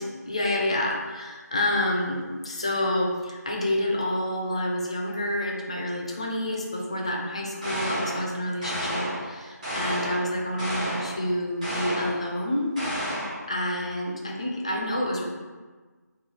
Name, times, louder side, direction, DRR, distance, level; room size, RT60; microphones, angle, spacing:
voice 1, 0.3-12.7 13.5-15.2, left 1 dB, 20° left, -1 dB, 0.3 m, -28 dB
sound 1, 7.6-8.2 8.6-9.2 9.6-10.2 10.6-11.1 11.6-12.2 12.8-13.4, equal, 25° right, 1.3 m, -31 dB
3.6 x 3.0 x 3.7 m, 1.4 s
figure-of-eight pair, 160°, 10 cm